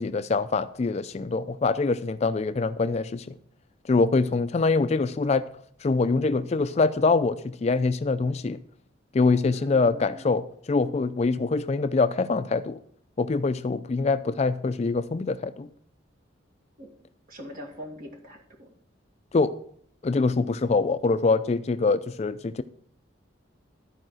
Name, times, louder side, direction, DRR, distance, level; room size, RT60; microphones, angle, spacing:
voice 1, 0.0-3.3 3.9-5.4 5.8-8.6 9.1-12.8 13.2-15.7 19.3-19.5 20.0-22.6, left 3 dB, 35° left, 12 dB, 0.4 m, -24 dB
voice 2, 9.5-10.4 16.8-16.9 17.3-18.7, left 1 dB, 45° right, 2 dB, 2.0 m, -43 dB
13.0 x 4.8 x 6.1 m, 0.63 s
head